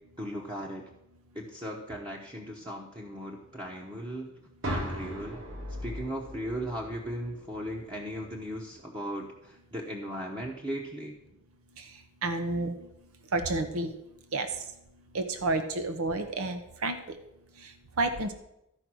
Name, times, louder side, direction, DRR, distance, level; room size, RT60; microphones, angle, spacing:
voice 1, 0.2-0.8 1.3-4.3 4.6-5.4 5.8-11.1, equal, 20° right, -2 dB, 0.9 m, -37 dB
sound 1, 4.6-8.6, equal, 70° right, 2.7 m, -39 dB
voice 2, 12.2-12.8 13.3-13.9 14.3-14.5 15.1-17.0 18.0-18.3, right 2 dB, 85° right, 8 dB, 0.8 m, -29 dB
12.5 x 5.2 x 6.1 m, 0.83 s
head